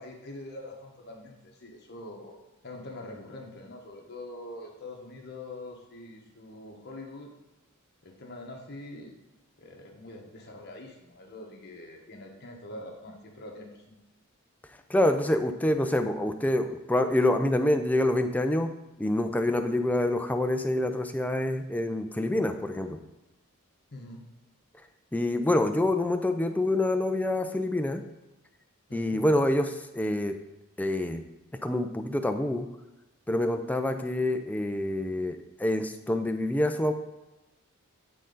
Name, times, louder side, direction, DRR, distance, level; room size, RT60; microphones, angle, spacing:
voice 1, 0.0-2.4 2.6-7.3 8.0-9.2 9.6-13.9 23.9-24.2 28.9-29.2, left 2 dB, 50° left, 1 dB, 1.2 m, -44 dB
voice 2, 14.9-18.7 19.0-23.0 25.1-28.0 28.9-30.3 30.8-31.2 31.6-32.7 33.3-36.9, left 1 dB, 5° left, 6 dB, 0.4 m, -26 dB
8.8 x 3.8 x 3.9 m, 1.0 s
head